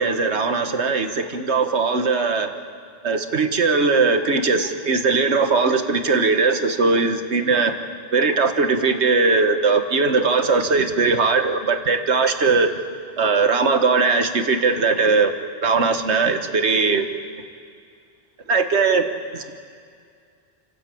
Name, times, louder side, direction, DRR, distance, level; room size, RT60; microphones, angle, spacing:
voice 1, 0.0-2.5 3.0-7.7 8.1-12.7 13.2-15.3 15.6-17.1 18.5-19.0 19.3-19.5, right 4 dB, 85° right, 7 dB, 1.7 m, -19 dB
28.5 x 13.0 x 8.6 m, 2.2 s
omnidirectional pair, 1.1 m